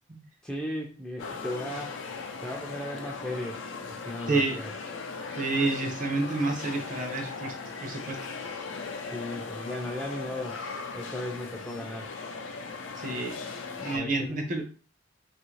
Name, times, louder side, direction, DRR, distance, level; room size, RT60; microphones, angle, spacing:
voice 1, 0.4-2.0 2.4-4.7 9.1-10.7 10.9-12.1 13.9-14.4, left 1 dB, 5° left, -1 dB, 0.3 m, -36 dB
sound 1, 1.2-14.0, left 4 dB, 85° left, 0.5 m, -38 dB
voice 2, 5.4-7.5 7.8-8.2 13.0-13.3 13.8-14.6, right 3 dB, 45° right, 5 dB, 0.6 m, -29 dB
2.7 x 2.4 x 3.1 m, 0.36 s
head